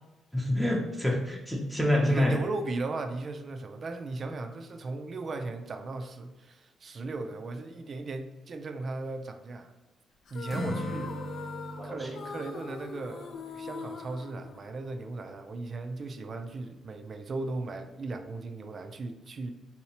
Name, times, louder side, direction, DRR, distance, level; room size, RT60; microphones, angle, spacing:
voice 1, 0.3-2.4 11.8-12.1, left 1 dB, ahead, -1 dB, 0.6 m, -27 dB
voice 2, 1.9-9.7 10.3-11.1 11.8-19.5, right 3 dB, 45° right, 7 dB, 0.4 m, -37 dB
sound 1, 10.3-15.1, left 6 dB, 65° left, 0.3 m, -42 dB
Acoustic guitar / Strum, 10.5-14.4, equal, 20° left, 0.9 m, -40 dB
3.9 x 2.8 x 2.9 m, 1.1 s
cardioid pair, 90°, 0 cm